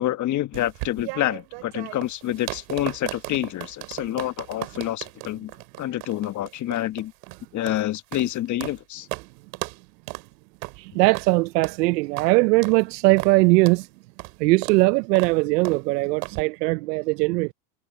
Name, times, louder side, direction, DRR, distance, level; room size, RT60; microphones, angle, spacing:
voice 1, 0.0-5.5 5.8-7.1 7.5-9.1, left 13 dB, 35° left, 1.3 m, -27 dB
sound 1, 0.5-8.8 9.1-9.3 9.5-9.8 10.1-10.3 10.6-10.8 11.1-11.3 11.6-11.8 12.2-12.3 12.6-12.8 13.2-13.4 13.7-13.8 14.2-14.4 14.6-14.8 15.2-15.4 15.7-15.8 16.2-16.4, right 28 dB, 60° right, 3.2 m, -35 dB
voice 2, 10.8-13.9 14.4-17.5, right 23 dB, 80° right, 0.6 m, -20 dB
supercardioid pair, 115°, 48 cm